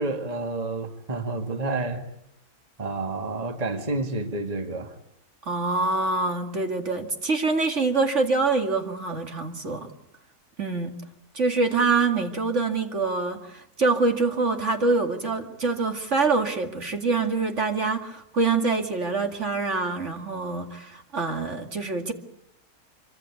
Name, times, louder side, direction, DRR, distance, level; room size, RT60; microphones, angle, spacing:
voice 1, 0.0-2.0 2.8-4.9, right 2 dB, 25° right, 6 dB, 2.0 m, -29 dB
voice 2, 5.5-9.9 10.6-11.0 11.3-22.1, right 3 dB, 50° right, 5 dB, 2.5 m, -25 dB
26.0 x 24.5 x 8.5 m, 0.77 s
omnidirectional pair, 1.6 m